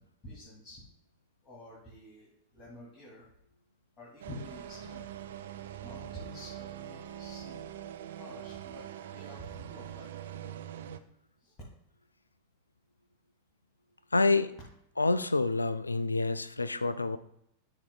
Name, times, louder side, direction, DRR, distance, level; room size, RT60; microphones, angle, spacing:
voice 1, 0.2-0.8 1.4-3.3 4.0-5.1 5.8-7.7 8.1-10.4 11.4-11.5, left 1 dB, 25° left, -7 dB, 2.5 m, -49 dB
sound 1, 4.2-11.0, right 11 dB, 60° right, 0.4 m, -43 dB
voice 2, 14.1-14.5 15.0-17.2, left 3 dB, 80° left, 15 dB, 0.3 m, -27 dB
12.0 x 5.0 x 2.3 m, 0.77 s
figure-of-eight pair, 90°, 0 cm